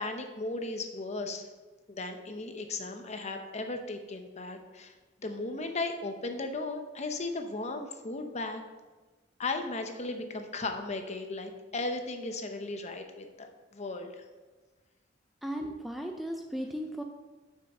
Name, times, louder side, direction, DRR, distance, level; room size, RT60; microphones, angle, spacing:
voice 1, 0.0-1.4 1.9-4.9 5.2-8.6 9.4-14.2, left 2 dB, 35° left, 5 dB, 0.8 m, -36 dB
voice 2, 15.4-17.0, equal, ahead, 3 dB, 0.4 m, -36 dB
7.1 x 6.5 x 5.5 m, 1.3 s
head